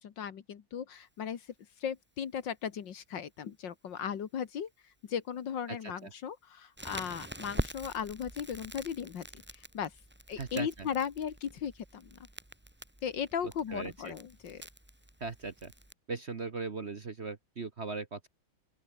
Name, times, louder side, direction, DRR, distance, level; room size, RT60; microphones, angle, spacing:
voice 1, 0.0-1.5 1.8-4.7 5.0-9.3 9.5-9.9 10.3-12.2 13.0-14.6, left 8 dB, 65° left, 2.0 m, -37 dB
Crackle, 6.8-15.9, right 1 dB, 5° right, 1.9 m, -44 dB
voice 2, 10.4-10.9 13.7-14.1 15.2-15.7 16.1-18.3, right 4 dB, 40° right, 1.3 m, -39 dB
open air
omnidirectional pair, 2.2 m